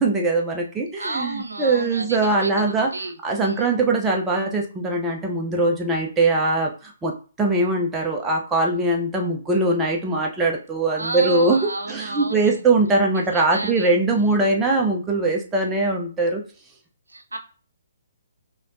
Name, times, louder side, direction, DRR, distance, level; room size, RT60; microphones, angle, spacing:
voice 1, 0.0-2.9 3.2-7.1 7.4-11.6 11.9-16.4, right 2 dB, 10° right, 0 dB, 0.7 m, -21 dB
voice 2, 1.0-3.2 3.4-3.7 11.0-12.6 13.1-13.9 17.1-17.4, right 2 dB, 80° right, 6 dB, 0.6 m, -32 dB
5.1 x 2.9 x 2.6 m, 0.38 s
figure-of-eight pair, 130°, 0 cm